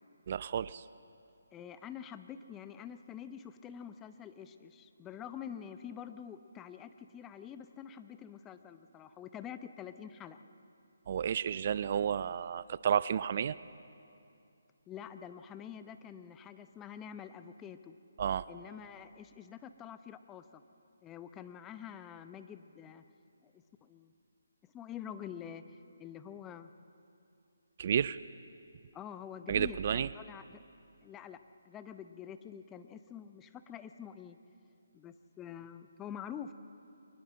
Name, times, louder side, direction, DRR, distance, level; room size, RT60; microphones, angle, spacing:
voice 1, 0.3-0.8 11.1-13.6 18.2-18.5 27.8-28.2 29.5-30.1, right 8 dB, 45° right, 17 dB, 0.4 m, -31 dB
voice 2, 1.5-10.4 14.9-17.9 18.5-20.6 21.0-23.0 23.4-24.1 24.7-26.7 28.9-30.6 31.0-34.4 34.9-36.5, left 8 dB, 15° left, 10 dB, 0.7 m, -47 dB
23.5 x 20.0 x 7.6 m, 2.6 s
figure-of-eight pair, 150°, 0 cm